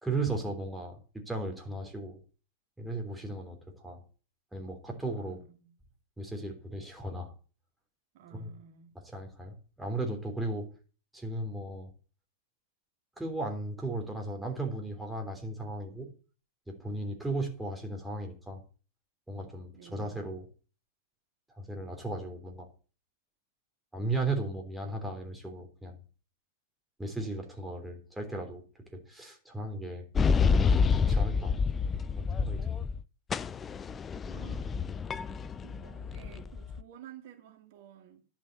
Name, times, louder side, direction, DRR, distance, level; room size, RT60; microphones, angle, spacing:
voice 1, 0.0-2.2 2.8-4.0 4.5-5.4 6.2-7.3 8.3-8.5 9.0-10.7 11.1-11.9 13.2-16.1 16.7-18.6 19.3-20.4 21.6-22.7 23.9-26.0 27.0-28.6 28.9-30.0 30.5-31.6 32.2-32.8, right 2 dB, 5° right, 2 dB, 3.3 m, -36 dB
voice 2, 5.2-5.7 8.1-9.0 19.7-20.3 34.3-34.8 35.6-38.2, right 9 dB, 55° right, 5 dB, 2.0 m, -52 dB
sound 1, 30.2-33.0 33.3-36.8, left 5 dB, 20° left, 0.5 m, -28 dB
11.0 x 6.0 x 8.0 m, 0.39 s
hypercardioid pair, 100°, 0 cm